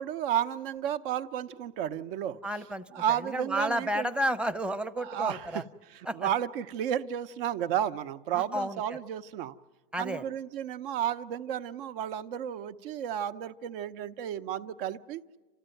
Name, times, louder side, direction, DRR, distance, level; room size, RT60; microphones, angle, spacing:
voice 1, 0.0-2.4 2.9-4.1 5.0-5.6 5.9-9.5 10.0-15.4, right 10 dB, 70° right, 0.9 m, -32 dB
voice 2, 2.4-5.6 6.1-6.3 8.3-8.8 9.9-10.2, equal, 5° right, 0.7 m, -32 dB
30.0 x 14.0 x 9.1 m
supercardioid pair, 125°, 29 cm